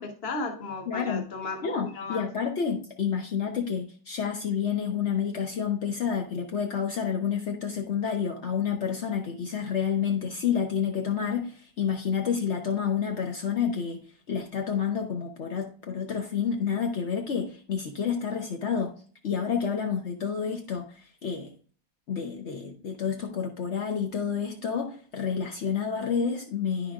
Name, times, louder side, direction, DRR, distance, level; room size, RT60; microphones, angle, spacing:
voice 1, 0.0-2.3, left 3 dB, 40° left, 1.0 m, -35 dB
voice 2, 0.9-1.3 1.6-14.0 14.3-18.9 19.2-21.5 22.1-26.9, left 7 dB, 75° left, 0.6 m, -29 dB
9.8 x 5.9 x 2.4 m
omnidirectional pair, 2.3 m